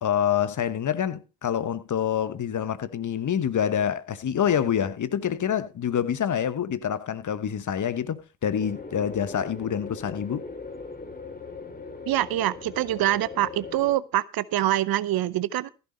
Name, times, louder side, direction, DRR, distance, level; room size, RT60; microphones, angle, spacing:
voice 1, 0.0-10.4, left 9 dB, 40° left, 1.2 m, -26 dB
sound 1, 8.6-13.9, left 4 dB, 20° left, 2.5 m, -39 dB
voice 2, 12.1-15.7, right 14 dB, 50° right, 0.8 m, -25 dB
15.0 x 6.9 x 5.3 m
hypercardioid pair, 50°, 47 cm